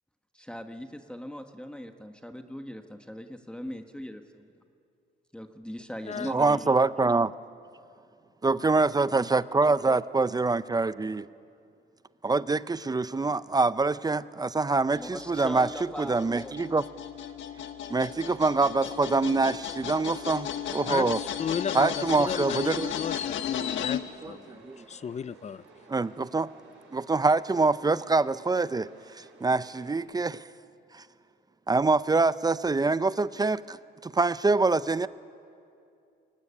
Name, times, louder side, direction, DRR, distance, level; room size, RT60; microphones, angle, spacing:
voice 1, 0.3-4.5 5.3-6.7 14.9-16.5, equal, 5° left, 5 dB, 1.3 m, -40 dB
voice 2, 6.2-7.3 8.4-11.3 12.2-15.7 16.0-16.8 17.9-21.2 21.7-22.9 23.6-23.9 24.2-24.8 25.9-26.5 26.9-30.5 30.9-31.0 31.7-35.1, right 3 dB, 20° right, 16 dB, 0.5 m, -25 dB
sound 1, 14.9-24.0, left 9 dB, 75° left, 1.4 m, -35 dB
voice 3, 20.8-22.6 22.9-24.0 24.3-24.6 24.9-25.6, left 7 dB, 35° left, 18 dB, 0.5 m, -34 dB
Chatter / Subway metro underground, 23.9-30.0, right 3 dB, 90° right, 6.9 m, -55 dB
23.0 x 17.5 x 9.9 m, 2.5 s
cardioid pair, 90°, 20 cm